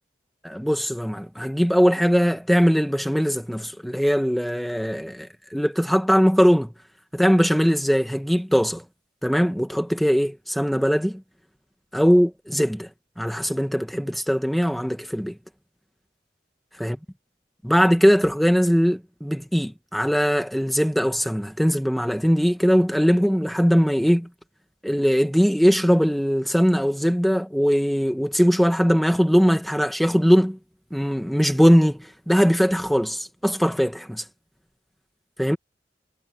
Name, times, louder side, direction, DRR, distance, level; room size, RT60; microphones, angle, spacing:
voice 1, 0.4-6.7 7.1-8.8 9.2-11.2 11.9-12.9 13.2-15.3 16.8-17.0 17.6-24.3 24.8-30.6 30.9-34.2 35.4-35.6, equal, ahead, 1.6 m, -20 dB
head